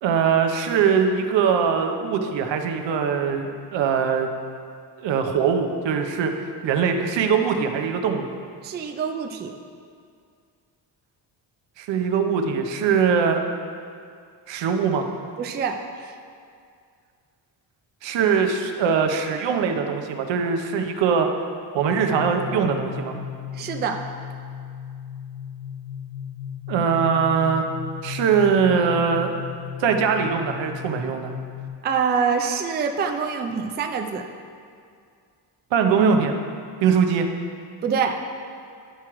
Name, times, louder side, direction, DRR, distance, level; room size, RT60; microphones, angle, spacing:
voice 1, 0.0-4.3 5.0-6.3 6.6-8.3 11.8-13.4 14.5-15.1 18.0-21.3 21.7-23.1 26.7-27.6 28.0-29.4 29.8-31.3 35.7-36.3 36.8-37.3, right 6 dB, 75° right, 5 dB, 0.8 m, -21 dB
voice 2, 8.6-9.5 15.4-16.1 23.1-23.3 23.5-24.0 31.8-34.3 37.8-38.2, right 6 dB, 25° right, 4 dB, 0.3 m, -25 dB
sound 1, 21.8-31.7, left 9 dB, 45° left, 0.6 m, -36 dB
11.5 x 4.7 x 3.0 m, 2.3 s
cardioid pair, 140°, 44 cm